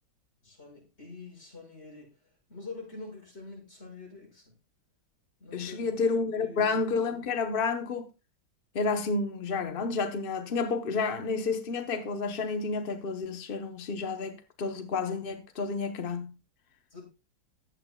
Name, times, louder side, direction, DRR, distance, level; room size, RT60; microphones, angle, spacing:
voice 1, 0.4-4.5 5.4-6.0 6.3-6.8 16.9-17.1, left 3 dB, 30° left, 6.1 m, -46 dB
voice 2, 5.5-8.1 8.7-16.3, left 4 dB, 50° left, 0.6 m, -30 dB
15.0 x 11.0 x 2.3 m
omnidirectional pair, 2.1 m